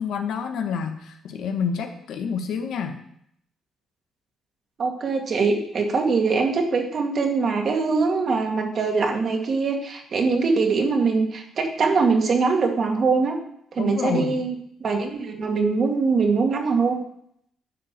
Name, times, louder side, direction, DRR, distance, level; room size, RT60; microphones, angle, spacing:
voice 1, 0.0-3.0 13.8-14.4, left 6 dB, 75° left, 6 dB, 1.4 m, -28 dB
voice 2, 4.8-13.4 13.7-14.5 14.8-17.0, right 4 dB, 50° right, 3 dB, 2.1 m, -22 dB
10.5 x 5.2 x 7.4 m, 0.71 s
cardioid pair, 90°, 0 cm